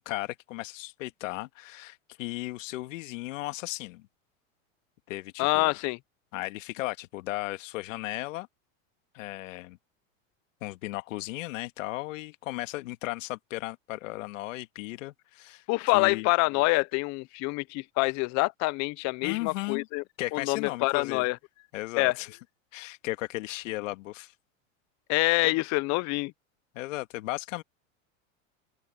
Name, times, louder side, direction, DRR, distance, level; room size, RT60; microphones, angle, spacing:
voice 1, 0.0-4.1 5.1-5.7 6.3-8.5 9.1-9.8 10.6-15.6 15.9-16.3 19.2-19.9 20.2-21.3 21.7-22.3 22.7-24.3 26.7-27.6, left 19 dB, 70° left, 1.9 m, -36 dB
voice 2, 5.4-6.0 15.7-20.0 20.3-21.4 22.0-22.1 25.1-26.3, left 25 dB, 45° left, 0.7 m, -26 dB
open air
supercardioid pair, 120°, 40 cm